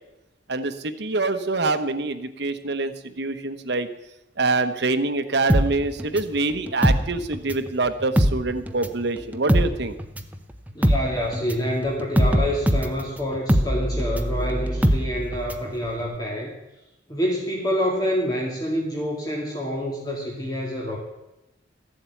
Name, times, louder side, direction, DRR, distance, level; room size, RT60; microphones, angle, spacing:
voice 1, 0.5-3.9 4.4-9.9, right 3 dB, 60° right, 9 dB, 1.1 m, -25 dB
sound 1, 5.5-7.7 8.0-15.7 16.0-16.1, equal, 10° right, 0.8 m, -22 dB
voice 2, 10.7-16.5 17.1-21.0, equal, 20° left, -1 dB, 2.0 m, -27 dB
14.5 x 7.8 x 9.1 m, 0.95 s
head